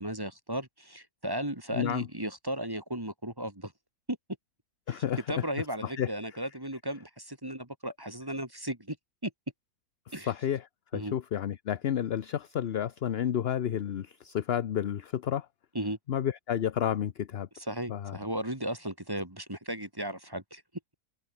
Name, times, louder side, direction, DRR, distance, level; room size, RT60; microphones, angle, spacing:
voice 1, 0.0-3.7 4.1-4.2 4.9-9.0 9.2-9.3 10.1-10.3 10.9-11.1 15.7-16.0 17.7-20.6, right 1 dB, 15° right, 2.3 m, -35 dB
voice 2, 1.7-2.1 4.9-5.5 5.8-6.1 10.3-15.5 16.1-17.5 17.9-18.2, left 9 dB, 50° left, 0.8 m, -31 dB
omnidirectional pair, 1.6 m